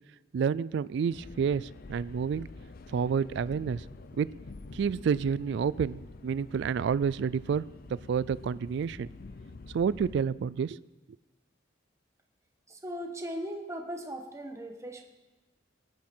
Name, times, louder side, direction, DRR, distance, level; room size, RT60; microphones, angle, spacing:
voice 1, 0.3-2.5 2.9-3.8 4.2-4.3 4.7-7.6 8.1-9.1 9.7-10.8, right 6 dB, 65° right, 19 dB, 0.3 m, -29 dB
sound 1, 1.1-10.2, left 3 dB, 50° left, 0.5 m, -47 dB
voice 2, 12.7-15.0, equal, 15° right, 3 dB, 1.3 m, -38 dB
19.0 x 9.5 x 4.4 m, 1.2 s
head